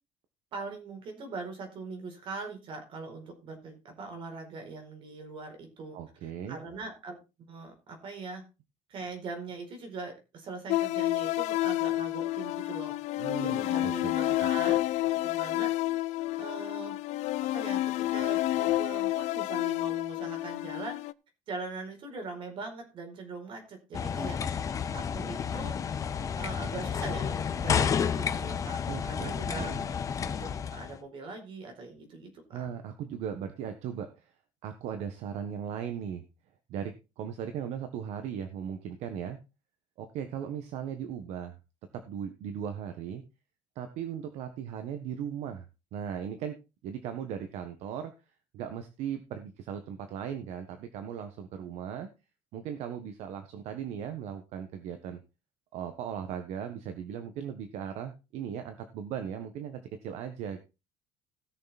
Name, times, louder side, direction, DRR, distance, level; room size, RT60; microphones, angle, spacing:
voice 1, 0.5-7.2 7.5-8.4 8.9-12.9 13.4-14.8 15.2-15.7 16.4-17.0 17.4-21.0 21.5-24.4 24.9-25.8 26.4-28.8 29.0-29.7 30.3-32.7, right 3 dB, 45° right, 4 dB, 4.6 m, -41 dB
voice 2, 5.9-6.6 13.2-14.1 14.4-14.7 28.9-29.8 32.5-34.3 34.6-36.2 36.7-39.4 40.0-41.6 41.9-43.2 43.7-45.6 45.9-46.6 46.8-48.1 48.5-52.1 52.5-55.2 55.7-60.6, right 8 dB, 60° right, 8 dB, 1.5 m, -38 dB
sound 1, 10.7-21.1, left 16 dB, 65° left, 0.6 m, -29 dB
sound 2, 23.9-31.0, left 7 dB, 25° left, 1.0 m, -31 dB
17.0 x 6.8 x 4.3 m, 0.29 s
cardioid pair, 170°, 13 cm